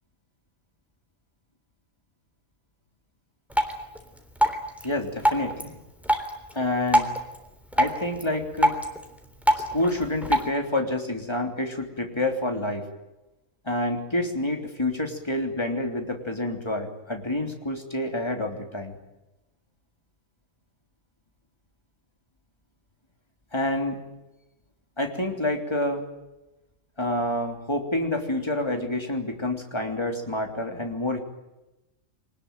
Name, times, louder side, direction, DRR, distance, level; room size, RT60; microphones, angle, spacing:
Drip, 3.5-10.5, equal, ahead, 3.5 m, -27 dB
voice 1, 4.8-5.8 6.5-7.1 7.7-8.8 9.7-12.9 13.6-19.0 23.5-24.0 25.0-26.1 27.0-31.2, left 1 dB, 20° left, 4 dB, 3.4 m, -28 dB
26.0 x 19.5 x 9.1 m, 1.0 s
omnidirectional pair, 1.3 m